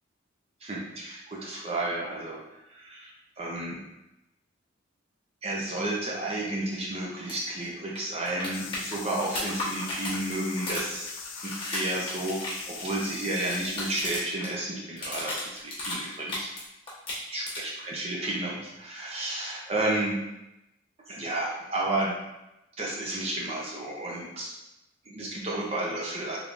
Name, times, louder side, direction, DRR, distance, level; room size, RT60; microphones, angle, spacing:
voice 1, 0.6-3.8 5.4-11.2 11.4-16.5 17.3-20.2 21.1-22.2 22.8-24.6 25.1-26.4, right 1 dB, 30° right, -3 dB, 0.5 m, -32 dB
sound 1, 7.2-7.4 7.6-7.7 8.0-14.5 14.8-16.6 16.9-17.8 19.9-20.0, left 2 dB, 25° left, 1.0 m, -35 dB
sound 2, 8.5-14.1, left 5 dB, 75° left, 0.5 m, -41 dB
3.7 x 3.3 x 2.4 m, 0.93 s
head